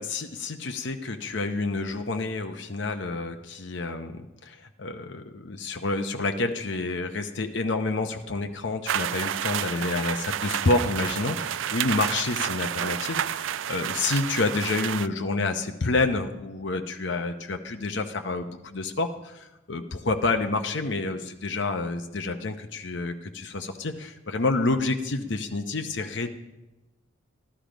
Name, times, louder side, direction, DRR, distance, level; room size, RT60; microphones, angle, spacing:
voice 1, 0.0-26.3, left 3 dB, 60° left, 6 dB, 0.8 m, -29 dB
sound 1, 8.9-15.1, right 10 dB, 65° right, 0.4 m, -30 dB
15.0 x 12.5 x 5.1 m, 1.0 s
head